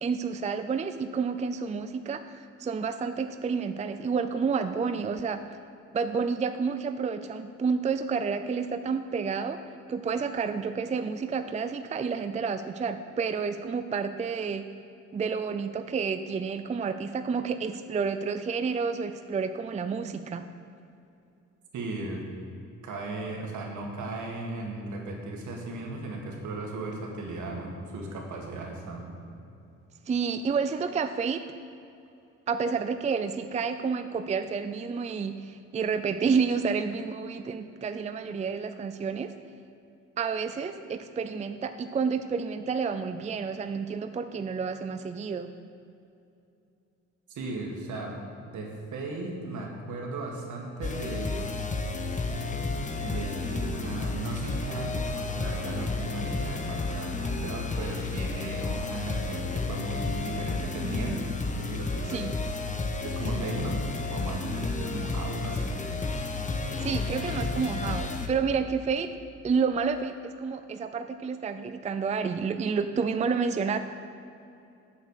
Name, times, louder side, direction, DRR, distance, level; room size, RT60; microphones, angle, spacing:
voice 1, 0.0-5.4 5.9-9.6 9.9-14.6 15.1-20.5 30.1-31.4 32.5-39.3 40.2-45.5 62.1-62.3 63.3-63.7 66.8-69.1 69.4-73.8, right 5 dB, 25° right, 9 dB, 0.4 m, -30 dB
voice 2, 21.7-22.2 22.8-29.2 47.4-51.5 53.0-62.4 63.0-63.8 64.1-65.7, right 2 dB, 75° right, 0 dB, 2.0 m, -36 dB
sound 1, 50.8-68.3, left 3 dB, 25° left, 0.9 m, -32 dB
7.8 x 7.3 x 6.6 m, 2.7 s
cardioid pair, 90°, 30 cm